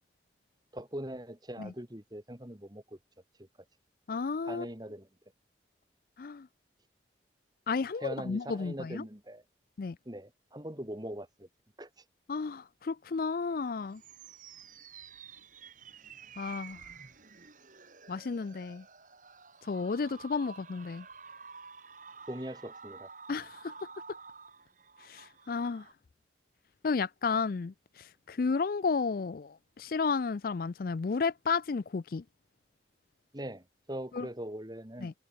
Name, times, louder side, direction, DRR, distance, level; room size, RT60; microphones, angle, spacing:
voice 1, 0.7-3.0 3.4-3.5 4.4-5.1 8.0-9.4 10.1-11.5 11.8-11.9 22.3-23.1 33.3-35.1, right 1 dB, 20° right, 2.2 m, -41 dB
voice 2, 4.1-4.7 6.2-6.5 7.7-9.0 9.8-10.0 12.3-14.0 16.4-16.8 18.1-18.8 19.6-21.0 23.3-23.7 25.1-25.9 26.8-32.2 34.1-34.3 35.0-35.1, left 4 dB, 50° left, 0.4 m, -32 dB
sound 1, 13.5-25.9, right 6 dB, 45° right, 2.3 m, -51 dB
head